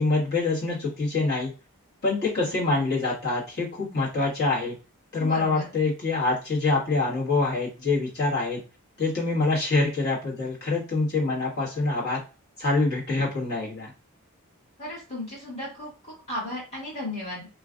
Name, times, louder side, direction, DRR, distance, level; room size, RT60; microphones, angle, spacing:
voice 1, 0.0-1.5 2.0-4.7 5.1-8.6 9.0-12.2 12.6-13.9, left 3 dB, 50° left, -6 dB, 1.4 m, -25 dB
voice 2, 5.2-5.7 14.8-17.5, left 1 dB, 30° left, -8 dB, 1.6 m, -35 dB
3.1 x 2.4 x 2.4 m, 0.33 s
head